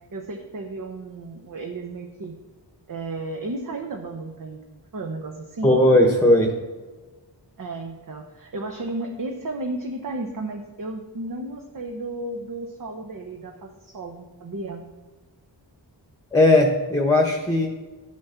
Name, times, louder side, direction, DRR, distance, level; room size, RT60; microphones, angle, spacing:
voice 1, 0.1-2.3 2.9-5.8 7.6-14.8, right 2 dB, 50° right, 3 dB, 1.0 m, -33 dB
voice 2, 5.6-6.5 16.3-17.7, left 1 dB, 10° left, 2 dB, 1.1 m, -17 dB
12.5 x 6.3 x 5.7 m, 1.3 s
wide cardioid pair, 125°, 43 cm